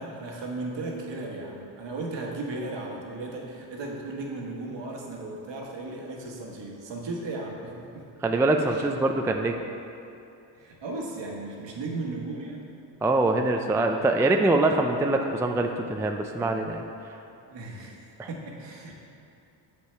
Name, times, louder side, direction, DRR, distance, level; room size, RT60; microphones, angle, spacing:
voice 1, 0.0-8.1 8.7-8.9 10.5-12.6 17.5-18.9, right 2 dB, 60° right, -1 dB, 1.4 m, -36 dB
voice 2, 8.2-9.6 13.0-16.8 18.2-18.3, right 2 dB, 5° right, 4 dB, 0.3 m, -24 dB
6.8 x 5.4 x 4.5 m, 2.7 s
supercardioid pair, 65°, 49 cm